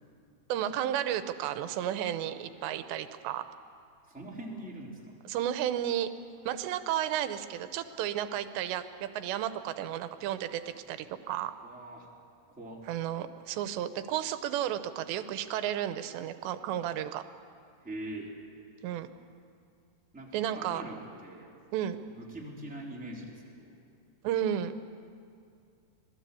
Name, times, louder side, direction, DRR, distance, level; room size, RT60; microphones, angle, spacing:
voice 1, 0.5-3.4 5.3-6.1 6.4-10.6 10.9-11.5 12.9-17.2 18.8-19.1 20.3-20.8 21.7-22.0 24.2-24.7, right 11 dB, 90° right, 10 dB, 3.1 m, -32 dB
voice 2, 4.1-5.2 11.6-12.1 12.5-12.9 17.8-18.3 20.1-21.6 22.1-23.8, right 1 dB, ahead, -4 dB, 3.1 m, -43 dB
26.0 x 18.5 x 8.4 m, 2.4 s
omnidirectional pair, 4.9 m